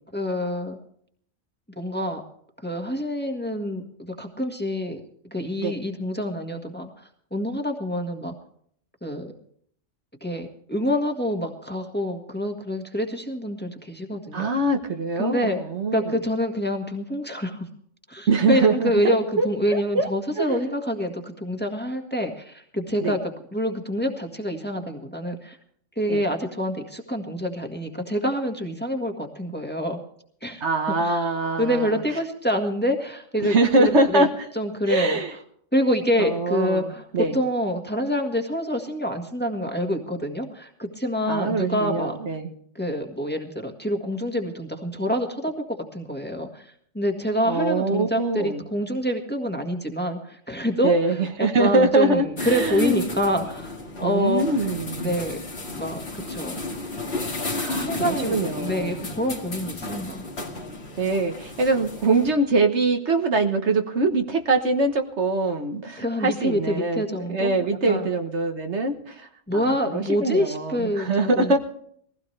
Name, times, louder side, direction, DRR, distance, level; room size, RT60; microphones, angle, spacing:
voice 1, 0.1-0.8 1.8-2.2 2.6-5.0 5.3-8.3 9.0-9.3 10.2-14.5 15.2-15.6 15.9-17.7 18.1-25.6 26.0-30.0 30.4-30.6 31.0-31.3 31.6-34.2 34.5-35.2 35.7-37.0 37.3-42.1 42.8-45.5 45.9-54.4 55.0-55.4 55.7-56.5 57.6-60.2 66.0-68.1 69.5-71.6, equal, 10° left, 4 dB, 1.6 m, -27 dB
voice 2, 14.3-16.2 18.3-20.1 20.5-20.7 23.0-23.2 26.1-26.2 30.6-32.0 33.4-34.3 34.9-35.3 36.2-37.4 41.3-42.5 47.5-48.6 50.8-53.1 54.0-55.3 57.6-59.0 61.0-71.6, right 3 dB, 70° right, 5 dB, 1.6 m, -23 dB
sound 1, 52.4-62.3, left 3 dB, 60° left, 2.3 m, -33 dB
21.5 x 16.0 x 3.3 m, 0.63 s
omnidirectional pair, 1.2 m